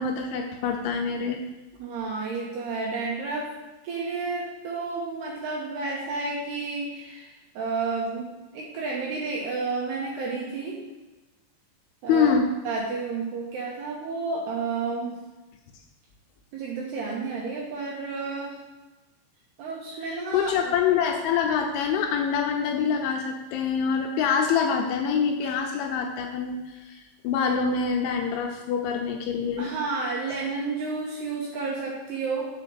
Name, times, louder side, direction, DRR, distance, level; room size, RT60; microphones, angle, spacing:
voice 1, 0.0-1.4 12.1-12.5 20.0-29.7, left 6 dB, 80° left, 3 dB, 2.9 m, -25 dB
voice 2, 1.8-3.5 3.8-10.8 12.0-12.3 12.6-15.2 16.5-18.6 19.6-20.7 29.6-32.5, right 4 dB, 75° right, -3 dB, 2.5 m, -31 dB
6.5 x 5.3 x 6.8 m, 1.1 s
omnidirectional pair, 5.8 m